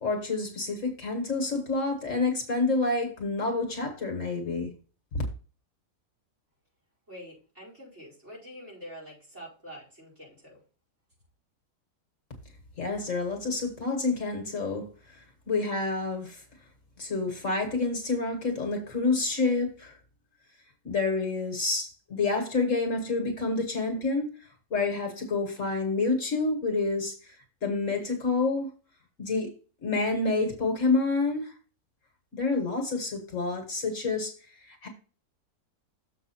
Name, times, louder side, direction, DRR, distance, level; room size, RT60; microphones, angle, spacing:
voice 1, 0.0-4.7 5.1-5.2 12.8-16.4 17.0-20.0 20.8-27.3 27.6-28.7 29.2-29.5 29.8-31.5 32.3-34.3 34.6-34.9, left 3 dB, 55° left, 1.8 m, -28 dB
voice 2, 7.1-10.6, equal, 45° right, 5.4 m, -46 dB
7.1 x 5.6 x 4.4 m
omnidirectional pair, 1.6 m